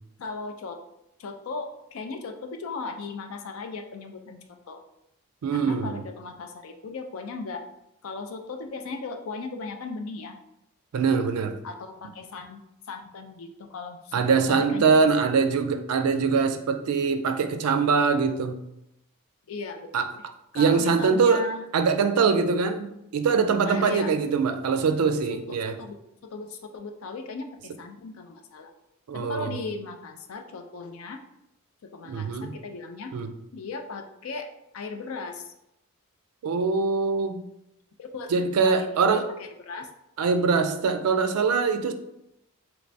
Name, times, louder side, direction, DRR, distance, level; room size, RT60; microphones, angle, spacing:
voice 1, 0.2-0.8 1.2-4.4 4.7-4.8 5.5-7.6 8.0-10.4 11.6-12.6 12.9-14.9 15.2-15.3 19.5-19.9 20.5-21.7 23.7-24.1 25.5-26.0 26.3-28.7 29.1-31.2 31.8-33.1 33.5-34.5 34.7-35.5 38.0-39.9, left 3 dB, 70° left, 5 dB, 0.4 m, -37 dB
voice 2, 5.4-6.0 10.9-11.6 14.1-18.6 19.9-20.1 20.5-21.4 21.7-25.8 29.1-29.5 32.0-32.6 33.1-33.3 36.4-37.4 38.3-39.2 40.2-41.9, right 5 dB, 90° right, 8 dB, 0.4 m, -23 dB
3.2 x 3.1 x 2.6 m, 0.84 s
head